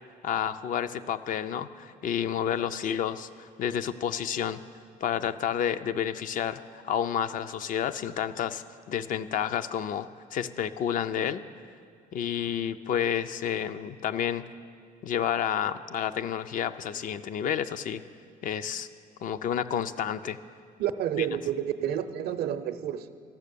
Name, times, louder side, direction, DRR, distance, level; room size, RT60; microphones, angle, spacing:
voice 1, 0.2-4.6 5.0-11.4 12.1-14.4 15.0-18.0 18.4-18.9 19.2-20.4, left 9 dB, 55° left, 12 dB, 0.4 m, -30 dB
voice 2, 20.8-23.1, right 10 dB, 70° right, 11 dB, 0.5 m, -30 dB
13.5 x 6.5 x 6.8 m, 2.1 s
cardioid pair, 110°, 17 cm